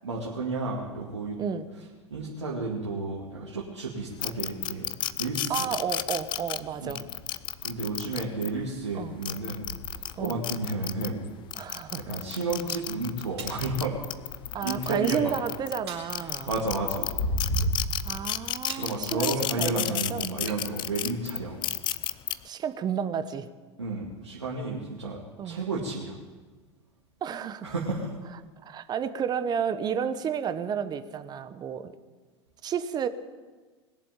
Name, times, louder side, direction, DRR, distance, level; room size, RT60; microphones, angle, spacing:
voice 1, 0.0-1.4 2.1-4.9 5.2-5.7 6.8-6.9 7.6-9.7 10.2-11.2 12.1-14.0 14.6-15.4 16.2-17.2 18.8-21.6 23.8-25.2 25.4-26.2 27.6-28.1, right 3 dB, 75° right, -4 dB, 2.3 m, -32 dB
voice 2, 1.4-1.7 5.5-7.0 8.9-9.2 10.2-10.4 11.6-12.0 14.5-16.5 18.0-20.3 22.4-23.5 25.4-25.6 27.2-27.7 28.6-31.9 32.6-33.1, right 7 dB, 30° right, 11 dB, 1.1 m, -31 dB
sound 1, 4.2-8.5 9.1-11.1 11.5-15.8 16.1-22.3, left 13 dB, 30° left, 0.6 m, -32 dB
sound 2, 4.6-5.7 6.0-17.7, equal, 65° left, 2.7 m, -39 dB
sound 3, 13.4-13.7 15.9-16.2 18.7-19.0 20.5-20.7, right 6 dB, 60° right, 3.9 m, -42 dB
20.5 x 7.5 x 9.0 m, 1.4 s
figure-of-eight pair, 85°, 15 cm